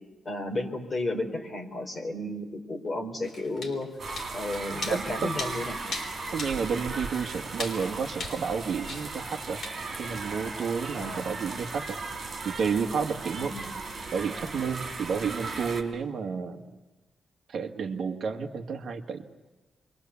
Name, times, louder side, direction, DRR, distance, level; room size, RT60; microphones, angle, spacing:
voice 1, 0.2-3.9 4.3-5.8 11.0-11.2 13.4-13.7, left 2 dB, 25° left, 2 dB, 4.0 m, -33 dB
sound 1, 3.2-9.7, left 3 dB, 45° left, 3.8 m, -41 dB
sound 2, 4.0-15.8, right 3 dB, 35° right, 4.1 m, -37 dB
voice 2, 4.9-5.3 6.3-9.6 10.0-12.0 12.4-13.5 14.1-16.6 17.5-19.2, right 6 dB, 60° right, 4 dB, 1.7 m, -31 dB
29.5 x 23.5 x 7.1 m, 1.2 s
wide cardioid pair, 165°, 0 cm